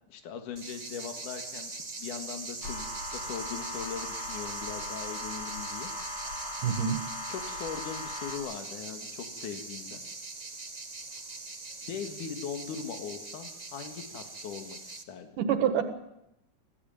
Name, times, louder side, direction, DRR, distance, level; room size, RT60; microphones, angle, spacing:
voice 1, 0.1-1.7 2.0-2.9 3.1-5.9 7.3-10.0 11.8-15.3, left 7 dB, 80° left, 6 dB, 3.3 m, -40 dB
sound 1, 0.6-15.0, right 3 dB, 50° right, 0.4 m, -41 dB
sound 2, 2.6-8.4, left 2 dB, 60° left, 5.0 m, -39 dB
voice 2, 6.6-7.0 15.4-15.9, right 8 dB, 90° right, 9 dB, 3.1 m, -26 dB
26.0 x 15.0 x 9.1 m, 0.86 s
omnidirectional pair, 3.6 m